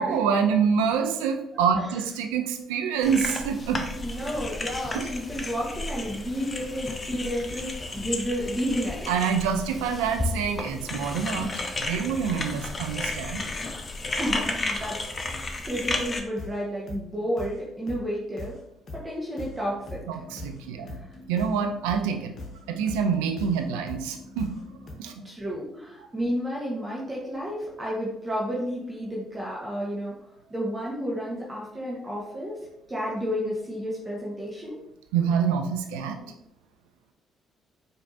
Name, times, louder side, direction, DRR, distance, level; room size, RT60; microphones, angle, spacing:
voice 1, 0.0-3.8 4.9-5.1 9.1-11.5 11.8-13.4 20.1-21.0 21.3-22.3 22.7-24.5 25.0-25.3 35.1-36.3, right 6 dB, 80° right, 6 dB, 0.4 m, -26 dB
sound 1, 3.0-16.2, left 2 dB, 30° left, 0.6 m, -33 dB
voice 2, 4.0-9.1 14.2-18.5 18.9-20.0 20.9-21.0 25.2-30.1 30.5-32.6 32.9-34.8, equal, 25° right, -5 dB, 1.0 m, -31 dB
sound 2, 15.9-16.1 16.4-16.6 16.9-17.1 17.4-17.6 17.9-18.1 18.4-18.6 18.9-19.1 19.4-24.9, left 2 dB, 50° left, 0.9 m, -42 dB
4.5 x 2.7 x 2.5 m, 0.82 s
hypercardioid pair, 50°, 0 cm